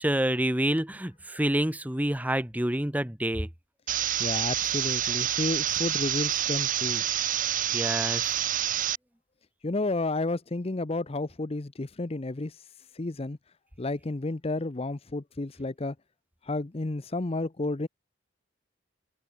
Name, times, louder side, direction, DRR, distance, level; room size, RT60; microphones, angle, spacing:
voice 1, 0.0-3.5 7.7-8.4, right 1 dB, 10° right, 1.1 m, -28 dB
sound 1, 3.9-9.0, right 11 dB, 45° right, 1.0 m, -28 dB
voice 2, 4.2-7.0 9.6-12.6 12.9-13.4 13.8-15.9 16.4-17.9, left 2 dB, 30° left, 0.7 m, -31 dB
head